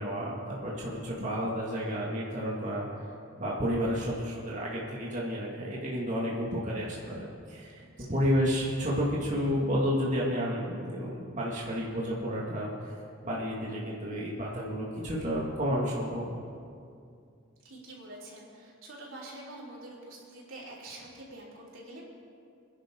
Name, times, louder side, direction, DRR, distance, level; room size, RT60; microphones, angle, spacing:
voice 1, 0.0-3.0 3.4-7.8 8.1-13.0 13.2-16.4, equal, 40° right, -5 dB, 2.2 m, -31 dB
voice 2, 17.6-22.0, right 1 dB, 80° right, -5 dB, 4.0 m, -46 dB
28.0 x 10.5 x 3.9 m, 2.4 s
head